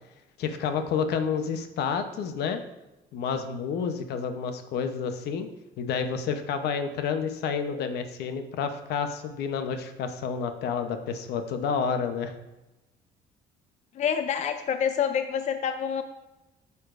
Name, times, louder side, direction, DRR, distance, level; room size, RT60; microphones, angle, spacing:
voice 1, 0.4-2.6 3.1-5.5 5.8-12.3, left 6 dB, 75° left, 8 dB, 0.8 m, -29 dB
voice 2, 13.9-16.0, left 7 dB, 45° left, 9 dB, 0.5 m, -27 dB
9.4 x 7.0 x 2.5 m, 1.0 s
cardioid pair, 110°, 17 cm